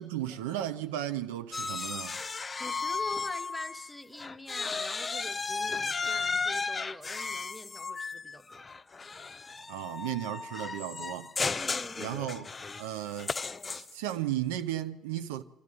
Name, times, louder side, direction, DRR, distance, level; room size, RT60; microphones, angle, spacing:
voice 1, 0.0-2.2 9.7-11.3 12.0-12.5 12.8-13.3 13.7-15.4, right 12 dB, 70° right, 0.6 m, -35 dB
sound 1, 1.5-3.9 4.2-14.1, left 4 dB, 25° left, 0.6 m, -34 dB
voice 2, 2.6-8.7 11.6-12.2 12.7-12.8, left 1 dB, 5° left, 1.3 m, -45 dB
25.0 x 13.5 x 9.6 m
figure-of-eight pair, 50°, 0 cm